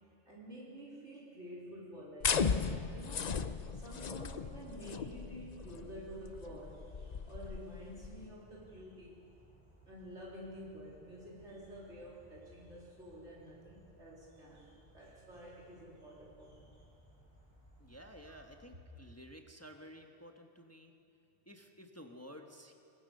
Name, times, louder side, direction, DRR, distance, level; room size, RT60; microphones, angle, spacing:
voice 1, 0.3-3.4 3.7-6.9 7.3-9.2 9.8-16.8 18.3-18.4, equal, 70° right, -5 dB, 4.1 m, -50 dB
sound 1, 2.2-8.3, left 5 dB, 40° left, 0.7 m, -37 dB
sound 2, 5.8-18.7, equal, 15° right, 6.4 m, -63 dB
voice 2, 17.8-20.9 21.5-22.7, equal, 15° left, 3 dB, 1.2 m, -53 dB
23.0 x 21.0 x 6.7 m, 2.7 s
omnidirectional pair, 1.2 m